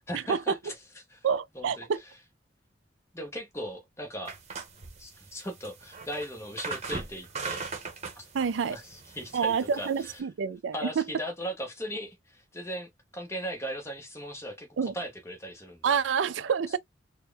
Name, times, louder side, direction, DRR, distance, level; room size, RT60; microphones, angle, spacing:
voice 1, 0.1-1.3 1.5-2.1 3.1-4.4 5.0-7.7 8.2-8.3 8.6-10.2 10.7-16.0, equal, 15° left, 1.0 m, -38 dB
voice 2, 1.2-2.0 8.3-8.8 9.3-11.0 14.8-14.9 15.8-16.8, right 6 dB, 80° right, 0.4 m, -28 dB
sound 1, 4.3-10.2, right 4 dB, 35° right, 1.0 m, -40 dB
4.3 x 2.2 x 3.3 m
head